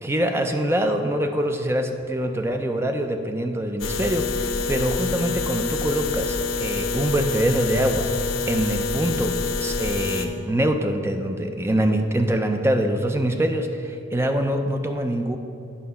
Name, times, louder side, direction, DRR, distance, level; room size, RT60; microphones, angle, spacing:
voice 1, 0.0-8.1 8.5-15.4, right 1 dB, 10° right, 5 dB, 0.5 m, -24 dB
sound 1, 3.8-10.3, left 4 dB, 80° left, 0.7 m, -27 dB
9.6 x 5.6 x 5.6 m, 2.6 s
head